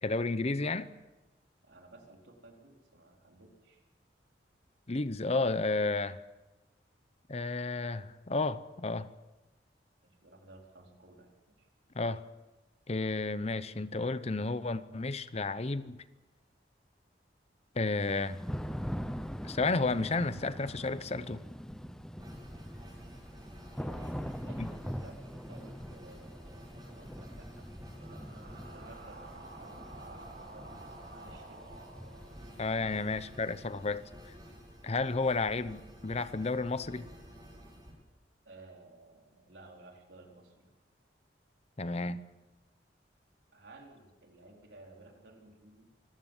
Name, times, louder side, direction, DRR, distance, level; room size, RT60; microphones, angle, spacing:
voice 1, 0.0-0.9 4.9-6.2 7.3-9.1 11.9-12.2 12.9-16.0 17.8-18.4 19.4-21.4 24.6-24.7 32.6-34.0 34.8-37.1 41.8-42.2, left 3 dB, 35° left, 14 dB, 0.8 m, -32 dB
voice 2, 1.6-3.8 10.0-11.7 23.8-27.7 28.0-31.7 38.4-40.7 43.5-45.9, right 2 dB, 80° right, 1 dB, 4.3 m, -55 dB
Thunder / Rain, 18.0-33.8, equal, 5° left, 0.9 m, -43 dB
sound 1, 22.2-37.9, equal, 25° right, 6.5 m, -52 dB
sound 2, 27.5-33.0, right 2 dB, 60° right, 7.1 m, -52 dB
25.0 x 15.0 x 7.3 m, 1.1 s
head